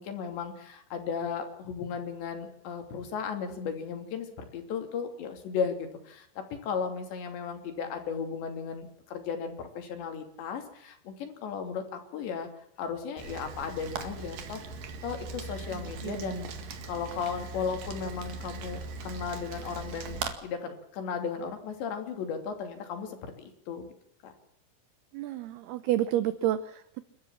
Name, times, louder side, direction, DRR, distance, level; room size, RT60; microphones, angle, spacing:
voice 1, 0.0-12.5 12.8-14.6 15.0-16.5 16.8-23.9 24.2-24.3, left 6 dB, 65° left, 6 dB, 5.0 m, -35 dB
Rain, 13.2-20.3, right 4 dB, 55° right, 3.2 m, -40 dB
voice 2, 15.7-16.4 25.1-27.0, right 13 dB, 80° right, 13 dB, 2.3 m, -30 dB
29.0 x 13.5 x 7.4 m, 0.71 s
omnidirectional pair, 5.7 m